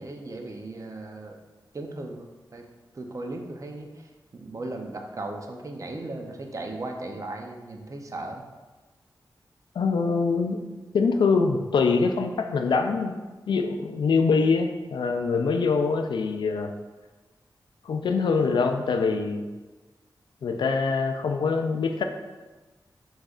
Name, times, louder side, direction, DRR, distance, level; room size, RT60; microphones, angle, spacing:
voice 1, 0.0-1.3 1.7-2.7 2.9-8.4, right 2 dB, 45° right, 2 dB, 0.6 m, -37 dB
voice 2, 9.8-10.6 10.9-13.1 13.5-16.7 17.8-19.5 20.4-22.1, left 4 dB, 85° left, 6 dB, 0.4 m, -24 dB
6.3 x 3.2 x 2.4 m, 1.2 s
wide cardioid pair, 75°, 8 cm